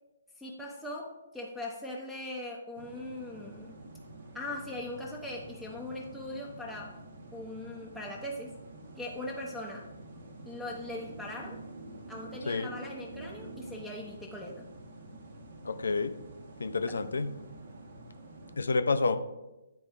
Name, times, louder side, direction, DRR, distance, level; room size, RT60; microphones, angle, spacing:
voice 1, 0.4-3.8 4.3-7.0 7.3-8.5 9.0-9.9 10.5-11.6 12.1-14.7 16.9-17.0, left 1 dB, ahead, -3 dB, 0.7 m, -40 dB
sound 1, 2.7-18.6, right 2 dB, 55° right, 1.0 m, -48 dB
voice 2, 15.6-16.1 16.6-17.3 18.6-19.2, left 4 dB, 70° left, 10 dB, 0.5 m, -29 dB
9.8 x 3.4 x 3.4 m, 1.0 s
figure-of-eight pair, 140°, 0 cm